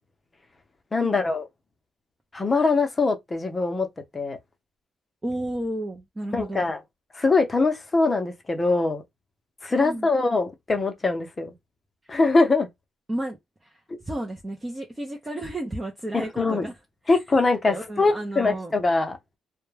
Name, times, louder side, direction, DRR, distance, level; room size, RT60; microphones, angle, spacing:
voice 1, 0.9-1.5 2.3-3.9 4.1-4.4 6.3-6.8 7.1-9.0 9.6-11.5 12.1-12.7 13.9-14.0 16.1-16.7 17.1-19.2, left 3 dB, 25° left, 0.6 m, -23 dB
voice 2, 5.2-6.7 9.7-10.1 13.1-16.7 17.0-17.2 17.6-18.7, right 1 dB, 20° right, 0.5 m, -33 dB
2.2 x 2.1 x 3.1 m
cardioid pair, 90°, 0 cm